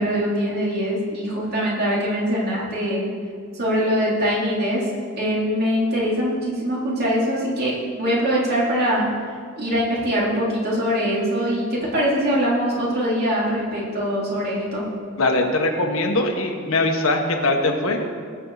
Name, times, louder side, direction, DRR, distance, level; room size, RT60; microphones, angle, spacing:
voice 1, 0.0-3.0 3.5-4.8 5.2-9.1 9.6-14.9, equal, 50° right, -6 dB, 3.8 m, -23 dB
voice 2, 15.2-18.0, left 2 dB, 70° left, 2 dB, 1.6 m, -21 dB
21.5 x 7.5 x 4.2 m, 2.1 s
head